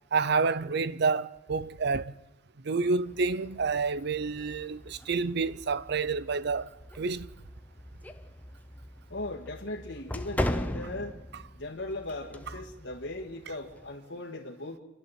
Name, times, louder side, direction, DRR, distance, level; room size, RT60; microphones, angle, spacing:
voice 1, 0.1-2.1 2.6-6.7 7.0-7.3, right 4 dB, 60° right, 0.6 m, -28 dB
sound 1, 3.1-13.9, left 1 dB, 10° left, 0.9 m, -39 dB
voice 2, 9.1-11.2 11.5-14.8, left 2 dB, 75° left, 2.0 m, -38 dB
29.0 x 11.0 x 8.2 m
head